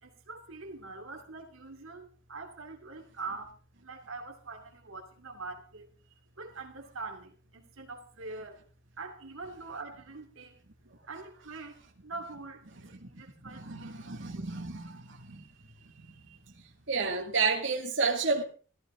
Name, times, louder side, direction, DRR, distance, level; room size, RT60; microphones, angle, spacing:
voice 1, 0.0-5.9 6.4-8.6 9.0-10.6 11.1-12.7 13.0-16.4, right 3 dB, 80° right, 2.6 m, -44 dB
voice 2, 13.5-15.5 16.9-18.4, right 4 dB, 60° right, 2.2 m, -31 dB
15.0 x 15.0 x 3.8 m
head